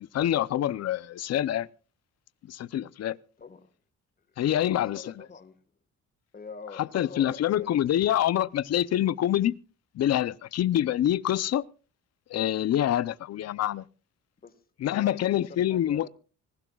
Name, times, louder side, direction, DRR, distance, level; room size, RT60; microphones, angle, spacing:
voice 1, 0.0-1.7 2.4-3.2 4.4-5.3 6.7-9.5 9.9-11.6 12.3-13.8 14.8-16.1, left 12 dB, 55° left, 0.6 m, -26 dB
voice 2, 3.4-3.7 4.3-5.6 6.3-7.9 14.4-14.6 14.9-15.2 15.5-16.1, left 5 dB, 30° left, 1.5 m, -45 dB
25.5 x 16.0 x 2.3 m
cardioid pair, 140°, 32 cm